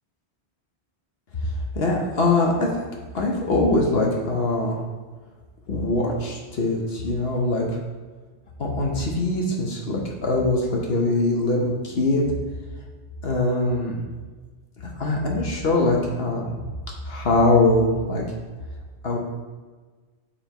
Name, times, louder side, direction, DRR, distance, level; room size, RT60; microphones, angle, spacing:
voice 1, 1.7-2.8 3.1-4.8 5.7-7.6 8.6-12.2 13.2-14.0 15.0-16.5 17.0-18.2 19.0-19.2, left 2 dB, 60° left, -1 dB, 1.3 m, -22 dB
8.5 x 5.6 x 3.0 m, 1.4 s
omnidirectional pair, 1.2 m